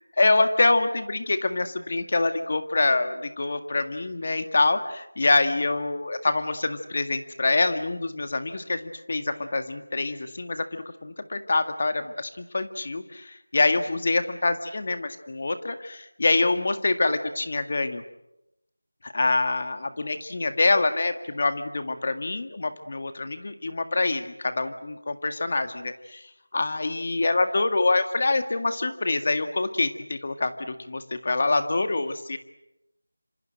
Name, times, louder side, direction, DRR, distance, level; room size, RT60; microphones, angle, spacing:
voice 1, 0.2-18.0 19.0-26.2 26.5-32.4, left 3 dB, 40° left, 8 dB, 1.9 m, -25 dB
27.5 x 26.5 x 7.8 m, 0.90 s
figure-of-eight pair, 175°, 0 cm